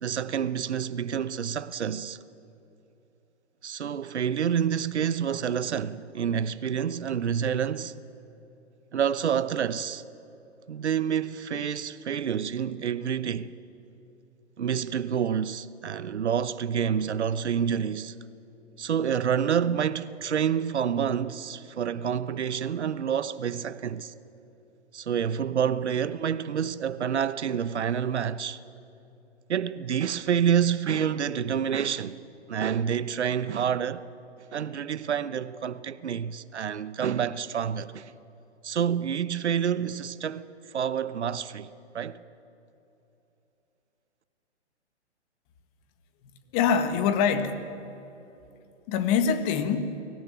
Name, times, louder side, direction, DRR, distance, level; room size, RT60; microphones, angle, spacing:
voice 1, 0.0-2.2 3.6-8.0 8.9-10.0 10.7-13.6 14.6-18.2 18.8-24.1 24.9-28.6 29.5-32.2 32.5-34.0 34.5-38.1 38.6-40.5 40.7-41.7 41.9-42.2, right 8 dB, 70° right, 1.0 m, -28 dB
voice 2, 46.5-47.7 48.9-50.0, left 7 dB, 30° left, 1.8 m, -24 dB
24.5 x 17.0 x 9.0 m
hypercardioid pair, 125°, 35 cm